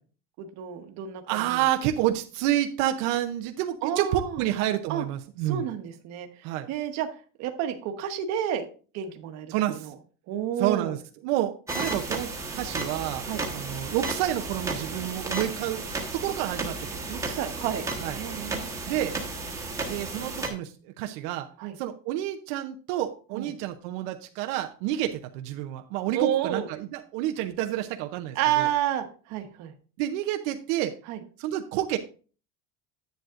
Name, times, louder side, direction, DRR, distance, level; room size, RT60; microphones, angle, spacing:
voice 1, 0.4-1.6 3.8-4.4 4.9-5.0 5.4-7.1 7.4-8.7 8.9-9.9 10.3-11.0 13.2-13.4 17.1-17.8 18.1-18.7 21.6-21.7 23.3-23.5 26.1-26.7 28.3-29.7 31.1-31.2, right 10 dB, 45° right, 6 dB, 1.1 m, -30 dB
voice 2, 1.3-5.7 6.4-6.7 9.5-9.9 10.6-11.0 11.2-13.2 13.5-15.8 16.1-16.8 18.0-18.2 18.9-19.1 19.8-21.5 21.8-28.7 30.0-30.9 31.4-32.0, right 13 dB, 80° right, 6 dB, 0.7 m, -29 dB
sound 1, 11.7-20.5, right 3 dB, 10° right, 1.2 m, -33 dB
10.5 x 7.9 x 2.5 m, 0.38 s
cardioid pair, 175°, 36 cm